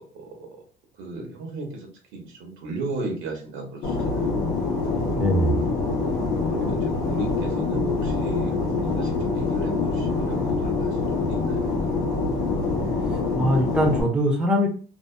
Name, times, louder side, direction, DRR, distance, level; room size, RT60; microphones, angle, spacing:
voice 1, 0.1-0.5 1.0-4.5 6.5-11.8, right 2 dB, 75° right, 2 dB, 1.0 m, -36 dB
Fixed-wing aircraft airplane, 3.8-14.0, left 3 dB, 85° left, 0.9 m, -25 dB
voice 2, 5.2-5.6 13.4-14.7, equal, 5° right, 1 dB, 0.8 m, -21 dB
2.7 x 2.3 x 2.2 m, 0.40 s
supercardioid pair, 95°, 20 cm